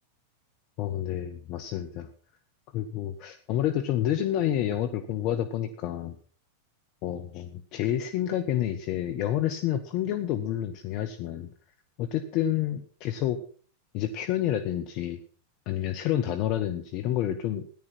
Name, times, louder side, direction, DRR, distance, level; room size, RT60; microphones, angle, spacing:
voice 1, 0.8-2.1 2.7-6.2 7.0-11.5 12.0-13.4 13.9-15.2 15.7-17.7, left 11 dB, 40° left, 7 dB, 1.1 m, -29 dB
14.0 x 10.5 x 6.1 m, 0.43 s
figure-of-eight pair, 90°, 0 cm